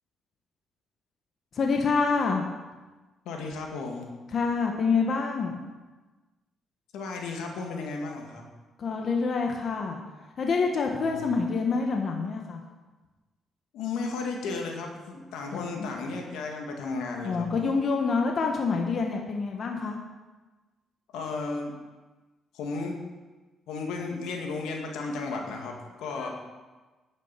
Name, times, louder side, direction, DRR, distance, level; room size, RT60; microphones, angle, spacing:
voice 1, 1.5-2.4 4.3-5.6 8.8-10.0 10.4-12.6 15.5-15.9 17.2-20.0 26.2-26.3, left 4 dB, 50° left, 2 dB, 1.4 m, -27 dB
voice 2, 3.3-4.1 6.9-8.4 10.9-11.2 13.7-17.7 21.1-21.7 22.5-22.9 23.7-26.3, left 3 dB, 90° left, 1 dB, 2.0 m, -34 dB
10.0 x 9.0 x 5.8 m, 1.2 s
cardioid pair, 90°, 0 cm